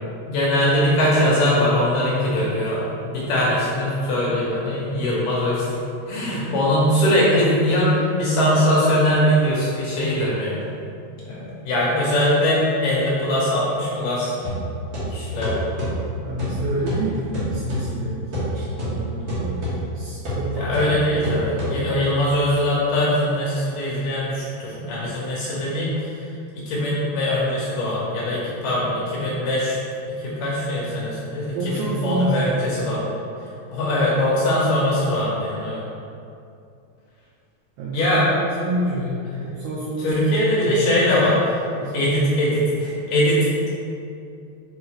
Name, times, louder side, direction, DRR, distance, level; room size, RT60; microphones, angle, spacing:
voice 1, 0.3-5.8 6.1-10.6 11.2-14.3 15.1-15.7 19.5-19.7 20.5-26.3 26.6-33.1 33.7-35.8 37.9-38.3 38.9-39.0 40.0-41.6 41.9-43.7, left 1 dB, 70° left, -7 dB, 2.1 m, -21 dB
voice 2, 6.1-6.6 16.2-19.6 19.9-21.5 31.6-32.9 37.8-39.1 39.4-40.9 41.7-42.1, right 1 dB, 80° right, -4 dB, 2.3 m, -29 dB
sound 1, 14.4-22.2, equal, 55° right, 2.0 m, -29 dB
6.4 x 4.6 x 3.2 m, 2.5 s
omnidirectional pair, 4.9 m